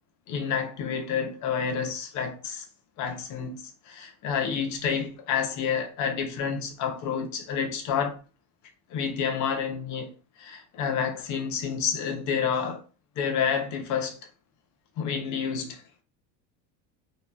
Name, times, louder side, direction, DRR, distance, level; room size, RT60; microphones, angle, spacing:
voice 1, 0.3-2.7 3.0-8.2 8.9-10.1 10.4-12.8 13.2-14.2 15.0-15.8, left 7 dB, 45° left, 0.6 m, -29 dB
2.9 x 2.3 x 2.2 m
supercardioid pair, 125°, 40 cm